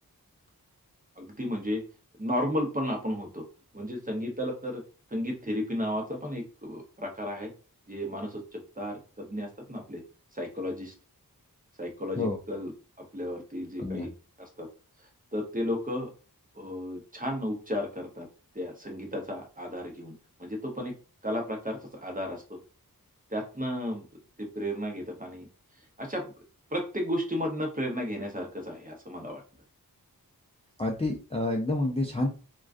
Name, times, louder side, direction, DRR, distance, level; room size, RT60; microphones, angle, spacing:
voice 1, 1.2-1.8 2.2-3.4 3.7-4.8 5.1-7.5 7.9-10.0 10.3-10.9 11.8-14.1 14.4-14.7 15.3-16.1 16.5-18.3 18.5-20.1 20.4-20.9 21.2-22.6 23.3-24.1 24.4-25.5 26.0-26.3 26.7-29.4, equal, 25° right, 2 dB, 0.7 m, -33 dB
voice 2, 30.8-32.3, left 2 dB, 15° left, -1 dB, 0.4 m, -28 dB
2.3 x 2.2 x 2.4 m, 0.35 s
wide cardioid pair, 45°, 36 cm